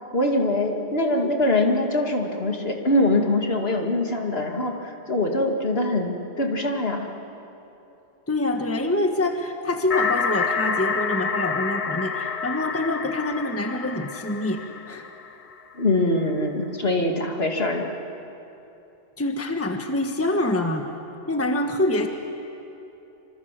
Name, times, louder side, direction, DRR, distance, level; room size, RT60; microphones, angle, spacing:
voice 1, 0.1-7.1 15.7-18.0, left 2 dB, 55° left, 2 dB, 2.7 m, -23 dB
voice 2, 8.3-14.6 14.9-15.1 19.2-20.9 21.3-22.1, left 2 dB, 10° left, 4 dB, 1.4 m, -25 dB
sound 1, 9.9-15.6, left 5 dB, 35° left, 0.7 m, -28 dB
26.5 x 26.5 x 7.7 m, 2.9 s
omnidirectional pair, 1.3 m